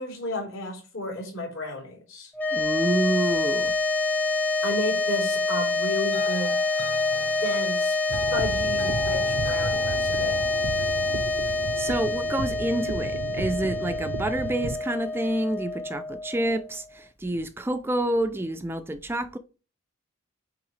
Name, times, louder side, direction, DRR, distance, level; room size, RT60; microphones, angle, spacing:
voice 1, 0.0-2.3 4.6-6.6 7.4-8.0 8.3-10.4, left 2 dB, 70° left, 3.4 m, -32 dB
sound 1, 2.3-16.8, left 2 dB, 10° left, 0.7 m, -27 dB
voice 2, 2.5-3.8 11.8-19.4, right 1 dB, 10° right, 0.3 m, -28 dB
sound 2, 6.1-13.3, left 3 dB, 30° left, 1.1 m, -40 dB
sound 3, 8.1-14.8, right 3 dB, 75° right, 0.6 m, -34 dB
8.5 x 3.6 x 3.2 m
head